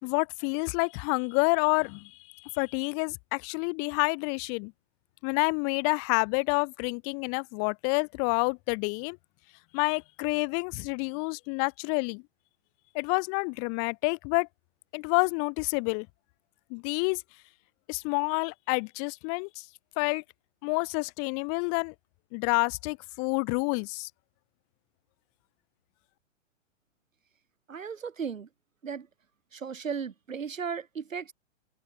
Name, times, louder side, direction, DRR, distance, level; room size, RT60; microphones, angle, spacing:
voice 1, 0.0-4.7 5.2-9.2 9.7-12.2 12.9-14.5 14.9-16.1 16.7-17.2 17.9-19.7 20.0-20.2 20.6-21.9 22.3-24.1, left 40 dB or more, 35° left, 5.0 m, -28 dB
voice 2, 27.7-28.5 28.8-29.1 29.5-31.3, right 6 dB, 85° right, 5.4 m, -35 dB
hypercardioid pair, 130°, 38 cm